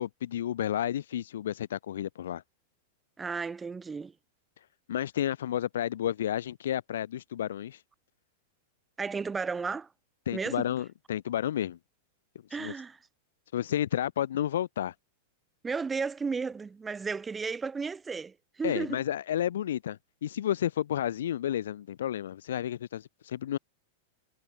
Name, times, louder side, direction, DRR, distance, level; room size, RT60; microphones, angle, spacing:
voice 1, 0.0-2.4 4.9-7.8 10.3-11.8 12.6-12.7 13.5-14.9 18.6-23.6, left 11 dB, 70° left, 1.2 m, -31 dB
voice 2, 3.2-4.1 9.0-9.9 10.3-10.7 12.5-13.0 15.6-19.0, right 5 dB, 15° right, 2.8 m, -34 dB
hypercardioid pair, 100°, 0 cm